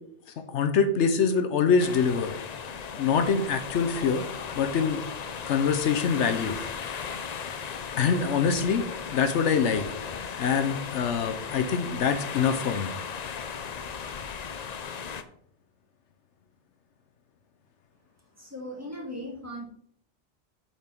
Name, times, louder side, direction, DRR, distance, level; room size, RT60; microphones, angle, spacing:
voice 1, 0.5-2.3 2.9-4.2 4.5-5.0 5.5-6.6 8.0-8.8 9.1-9.9 10.4-12.9, left 6 dB, 75° left, 8 dB, 1.0 m, -24 dB
sound 1, 1.8-15.2, left 6 dB, 50° left, 0.5 m, -36 dB
voice 2, 18.3-19.7, equal, 15° right, -2 dB, 1.9 m, -38 dB
8.3 x 4.5 x 4.4 m, 0.67 s
omnidirectional pair, 1.2 m